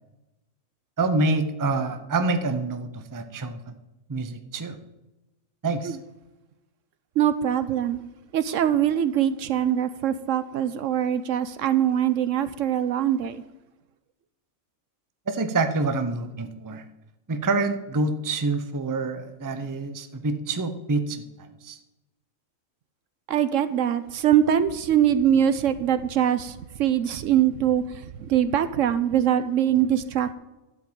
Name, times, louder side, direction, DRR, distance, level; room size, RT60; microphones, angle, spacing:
voice 1, 1.0-3.7 4.1-4.8 5.6-6.0 15.3-16.8 17.3-21.8, right 3 dB, 20° right, 0.5 m, -27 dB
voice 2, 7.2-8.0 8.3-13.4 23.3-30.3, right 10 dB, 70° right, 0.9 m, -23 dB
11.5 x 5.1 x 8.7 m
omnidirectional pair, 1.5 m